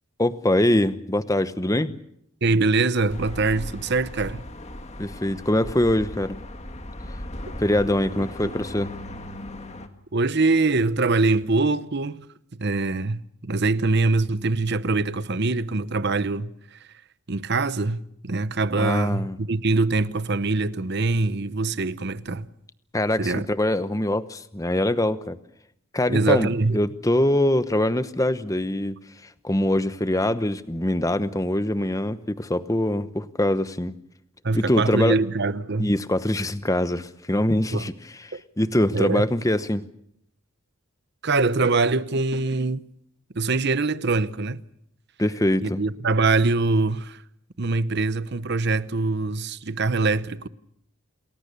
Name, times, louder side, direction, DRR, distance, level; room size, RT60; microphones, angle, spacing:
voice 1, 0.2-1.9 5.0-6.4 7.6-8.9 18.8-19.4 22.9-25.4 25.9-29.0 29.2-34.0 34.5-35.2 35.8-37.9 38.3-39.8 45.2-45.8, left 1 dB, 15° left, 0.9 m, -23 dB
voice 2, 2.4-4.4 8.2-8.3 10.1-12.3 12.6-16.8 17.3-22.5 23.2-23.5 26.1-26.8 34.4-35.9 37.7-37.8 38.3-38.4 38.9-39.2 41.2-42.8 43.3-44.6 45.6-47.2 47.6-50.5, right 3 dB, 50° right, 0.9 m, -23 dB
sound 1, 3.1-9.9, left 1 dB, 30° left, 1.8 m, -37 dB
28.5 x 20.5 x 6.8 m
head